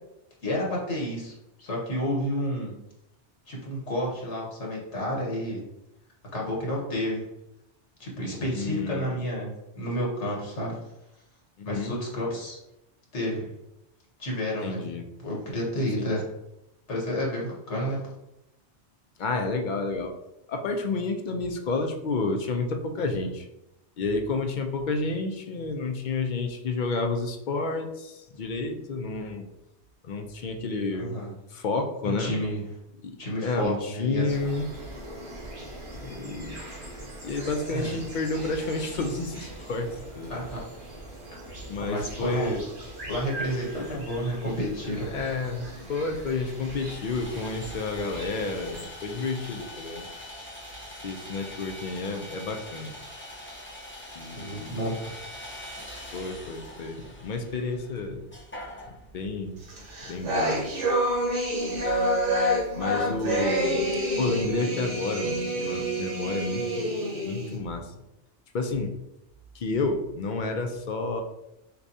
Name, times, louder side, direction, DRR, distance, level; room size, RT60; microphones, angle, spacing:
voice 1, 0.4-2.7 3.5-5.6 6.3-7.2 8.0-10.8 11.6-12.6 13.1-13.5 14.2-14.8 15.2-16.2 16.9-18.0 30.9-31.3 32.2-32.6 33.2-34.4 37.7-38.0 40.3-40.7 41.8-42.5 43.1-45.1 54.3-55.2, equal, 80° left, -3 dB, 1.5 m, -30 dB
voice 2, 8.5-9.2 11.6-11.9 14.6-15.1 16.0-16.1 19.2-20.1 20.5-23.5 24.0-29.5 30.0-31.2 31.5-32.4 33.0-34.7 36.0-36.6 37.2-40.4 41.7-42.7 43.8-44.0 45.1-50.1 51.0-53.0 54.1-54.8 56.1-58.2 59.1-59.6 60.0-60.7 62.8-63.9 64.2-66.9 67.2-67.9 68.5-69.0 69.5-71.2, left 3 dB, 55° left, 4 dB, 0.6 m, -30 dB
sound 1, 34.3-48.8, right 1 dB, 50° right, 1.4 m, -41 dB
Sawing, 45.1-64.5, left 1 dB, 15° left, 0.6 m, -44 dB
sound 2, 59.7-67.6, equal, 90° right, 1.4 m, -27 dB
6.6 x 2.3 x 2.7 m, 0.89 s
omnidirectional pair, 1.2 m